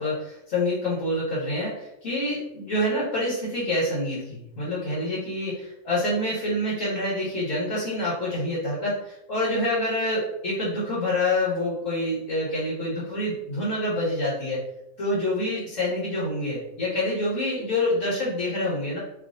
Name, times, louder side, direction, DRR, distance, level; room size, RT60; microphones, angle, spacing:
voice 1, 0.0-14.6 15.0-19.0, left 1 dB, 75° left, -8 dB, 1.8 m, -27 dB
4.7 x 3.1 x 2.6 m, 0.82 s
omnidirectional pair, 1.4 m